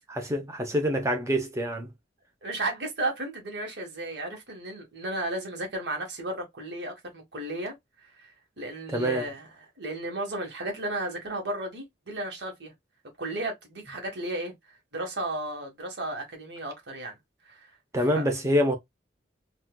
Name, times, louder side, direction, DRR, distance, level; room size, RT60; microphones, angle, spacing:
voice 1, 0.2-1.9 8.9-9.2 17.9-18.8, equal, 15° right, 0.6 m, -26 dB
voice 2, 2.4-7.7 8.6-9.5 9.8-12.7 13.2-14.5 14.9-17.2 17.5-17.6 18.0-18.3, right 2 dB, 65° right, 1.4 m, -34 dB
4.2 x 2.3 x 2.2 m
head